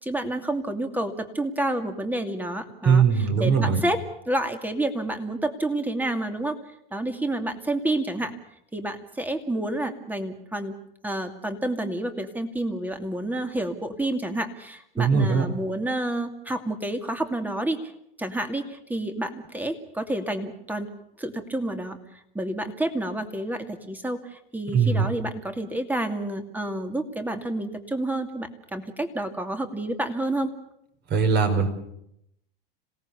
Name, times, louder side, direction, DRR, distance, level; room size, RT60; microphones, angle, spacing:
voice 1, 0.0-6.6 6.9-8.3 8.7-10.8 11.0-17.8 18.2-20.9 21.2-22.0 22.3-30.5, right 1 dB, 5° right, 7 dB, 2.6 m, -29 dB
voice 2, 2.8-3.8 15.0-15.4 24.7-25.0 31.1-31.7, right 5 dB, 35° right, 7 dB, 4.8 m, -20 dB
27.0 x 18.0 x 7.0 m, 0.75 s
hypercardioid pair, 105°, 29 cm